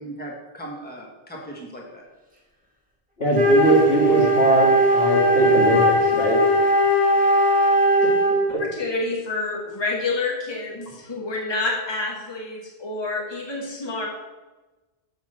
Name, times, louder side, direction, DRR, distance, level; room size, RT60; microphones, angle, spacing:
voice 1, 0.0-2.0, right 1 dB, 10° left, -1 dB, 1.4 m, -38 dB
voice 2, 3.2-6.4 8.5-8.6, right 1 dB, 70° left, -3 dB, 2.4 m, -21 dB
Wind instrument woodwind instrument, 3.3-8.5, right 1 dB, 10° right, 1.8 m, -18 dB
voice 3, 8.6-14.1, left 3 dB, 25° left, -3 dB, 1.5 m, -28 dB
7.2 x 5.9 x 6.7 m, 1.2 s
omnidirectional pair, 1.0 m